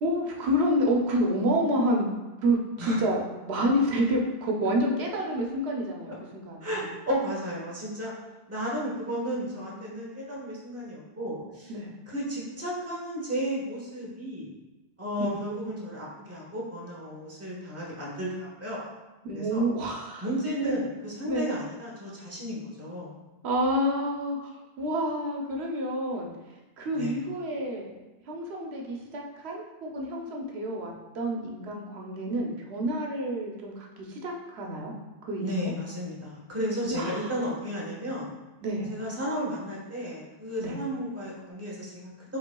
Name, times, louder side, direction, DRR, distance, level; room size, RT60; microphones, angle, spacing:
voice 1, 0.0-2.1 2.4-6.9 9.1-9.3 11.7-11.9 15.2-15.3 19.2-20.2 20.6-20.8 21.3-21.5 23.4-24.5 24.8-26.3 26.8-28.0 28.3-34.9 35.3-35.7 36.9-37.3 38.6-38.9 40.6-40.7, equal, 90° right, 0 dB, 1.0 m, -28 dB
voice 2, 6.6-8.1 8.5-11.7 12.1-14.5 15.0-18.9 19.3-19.6 20.2-23.2 26.9-27.2 35.4-38.3 38.9-42.1, equal, 15° right, -5 dB, 1.1 m, -33 dB
5.5 x 4.0 x 2.2 m, 1.1 s
omnidirectional pair, 1.1 m